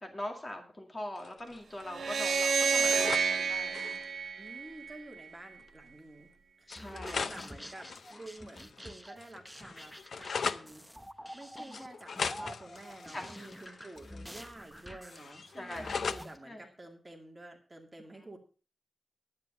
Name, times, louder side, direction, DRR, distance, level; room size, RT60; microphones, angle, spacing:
voice 1, 0.0-4.0 6.7-7.3 11.6-11.9 13.1-13.3 15.5-16.0 16.5-16.6, left 1 dB, 25° left, 3 dB, 2.0 m, -42 dB
sound 1, 1.2-1.8 2.1-3.3 3.6-4.1 5.2-5.3 5.6-5.7 6.7-8.9 9.2-10.7 11.7-14.5 14.8-16.3, left 5 dB, 70° left, 0.6 m, -40 dB
sound 2, 1.9-5.2, right 5 dB, 80° right, 0.8 m, -29 dB
voice 2, 4.4-6.3 6.6-10.8 11.3-18.4, right 2 dB, 20° right, 2 dB, 2.3 m, -50 dB
sound 3, 6.8-16.4, equal, ahead, 0.9 m, -48 dB
10.5 x 9.7 x 5.4 m, 0.36 s
wide cardioid pair, 150°, 0 cm